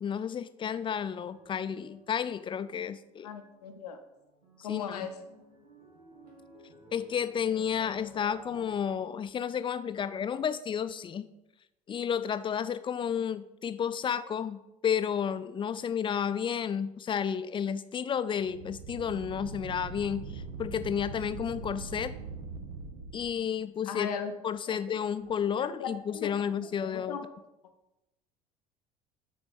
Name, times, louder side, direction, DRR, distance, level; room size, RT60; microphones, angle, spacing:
voice 1, 0.0-3.3 4.7-5.1 6.9-11.3 11.9-22.1 23.1-24.1 24.4-27.2, left 8 dB, 25° left, 13 dB, 0.4 m, -32 dB
sound 1, 0.6-2.9 3.2-3.8 4.1-8.8, right 1 dB, 90° right, 1.5 m, -55 dB
voice 2, 3.2-4.0 4.6-5.1 23.9-24.3 24.7-25.0 25.6-26.3 26.8-27.2, left 7 dB, 80° left, 7 dB, 0.6 m, -37 dB
sound 2, 18.3-23.2, right 4 dB, 70° right, 0.7 m, -41 dB
6.1 x 4.4 x 5.2 m, 0.95 s
figure-of-eight pair, 65°, 20 cm